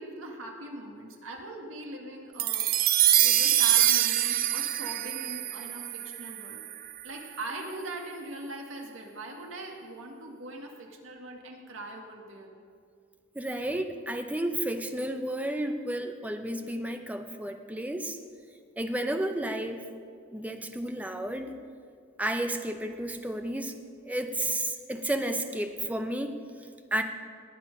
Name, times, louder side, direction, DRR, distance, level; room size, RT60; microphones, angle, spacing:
voice 1, 0.0-2.9 3.2-6.6 7.0-12.5, right 2 dB, 75° right, 1 dB, 1.9 m, -41 dB
sound 1, 2.4-6.9, right 12 dB, 45° right, 0.4 m, -25 dB
voice 2, 13.3-18.2 18.8-19.8 20.3-21.6 22.2-23.7 24.0-26.4 26.9-27.0, right 1 dB, 5° right, 6 dB, 0.7 m, -32 dB
19.0 x 7.9 x 5.3 m, 2.2 s
head